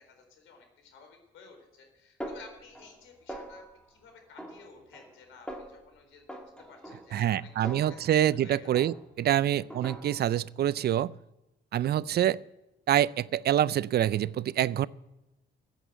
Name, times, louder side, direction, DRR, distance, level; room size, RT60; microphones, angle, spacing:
voice 1, 0.0-8.0 8.3-9.0 9.3-9.4, left 4 dB, 80° left, 4.2 m, -54 dB
Snare drum, 2.2-3.0 3.3-3.9 4.4-5.2 5.5-5.9 6.3-8.4 8.7-9.3 9.7-10.4, right 1 dB, 5° left, 2.2 m, -43 dB
voice 2, 7.1-11.1 11.7-12.4 12.9-14.9, right 11 dB, 55° right, 0.4 m, -26 dB
15.5 x 8.3 x 7.9 m
cardioid pair, 90°, 20 cm